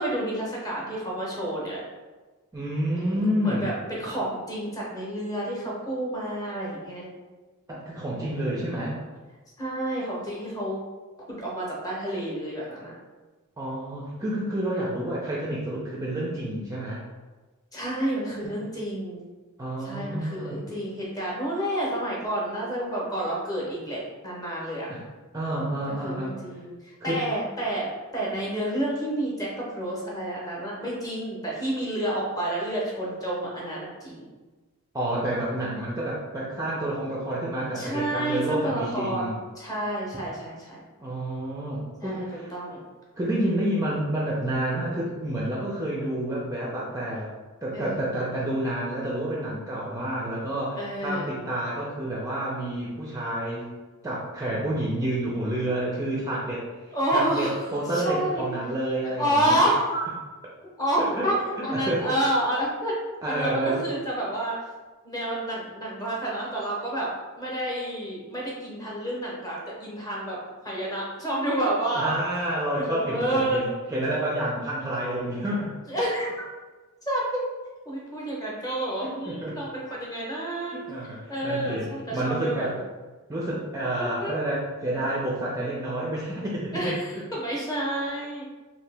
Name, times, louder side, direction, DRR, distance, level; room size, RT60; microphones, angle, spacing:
voice 1, 0.0-1.8 2.9-7.1 8.1-8.6 9.6-10.8 11.3-12.9 17.7-19.2 19.8-24.9 25.9-34.3 37.7-40.8 42.0-42.8 47.7-48.1 50.8-51.3 56.9-57.6 57.9-58.4 59.2-60.0 60.8-62.9 63.3-64.6 65.0-67.1 67.4-70.4 70.6-72.1 72.8-73.6 75.9-76.5 77.1-77.4 77.9-80.8 81.3-82.8 84.0-84.3 86.7-88.4, right 1 dB, 15° left, -4 dB, 0.8 m, -29 dB
voice 2, 2.5-3.7 7.7-9.0 13.6-17.0 18.4-18.5 19.6-20.6 24.9-25.0 25.3-26.4 27.1-27.2 34.9-39.4 41.0-42.5 43.2-47.3 47.6-53.7 54.0-56.7 57.1-59.6 61.0-61.3 61.7-62.2 63.2-63.8 71.9-75.7 79.0-79.6 80.7-82.7 83.3-87.2, right 1 dB, 15° right, -5 dB, 0.4 m, -29 dB
2.8 x 2.7 x 3.3 m, 1.3 s
head